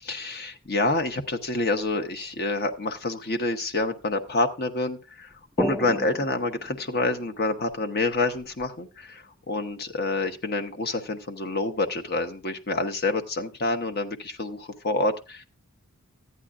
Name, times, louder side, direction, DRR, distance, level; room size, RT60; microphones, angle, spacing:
voice 1, 0.0-15.4, left 2 dB, 45° left, 6 dB, 1.0 m, -28 dB
sound 1, 0.6-2.0 3.8-3.9 4.1-4.2 5.3-8.7, equal, ahead, 0.4 m, -35 dB
14.0 x 9.7 x 2.4 m, 0.30 s
head